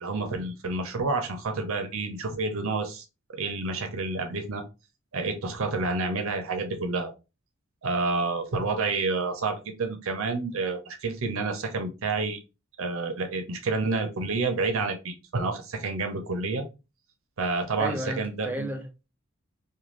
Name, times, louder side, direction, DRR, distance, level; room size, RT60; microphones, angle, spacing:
voice 1, 0.0-3.0 3.3-4.6 5.1-7.1 7.8-12.4 12.8-16.6 17.4-18.7, right 3 dB, 65° right, 0.6 m, -29 dB
voice 2, 17.8-19.1, equal, 10° right, 0.4 m, -33 dB
2.5 x 2.3 x 3.1 m
head